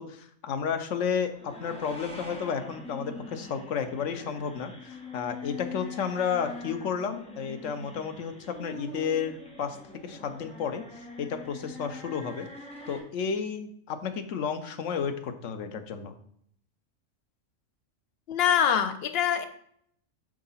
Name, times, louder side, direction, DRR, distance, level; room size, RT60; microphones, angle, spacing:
voice 1, 0.0-9.8 10.0-10.8 11.2-12.5 12.9-16.1, left 6 dB, 80° left, 7 dB, 1.1 m, -32 dB
sound 1, 1.2-13.0, left 2 dB, 5° left, 1.3 m, -43 dB
voice 2, 18.3-19.5, left 8 dB, 60° left, 8 dB, 0.9 m, -24 dB
6.4 x 3.8 x 5.6 m, 0.67 s
omnidirectional pair, 1.3 m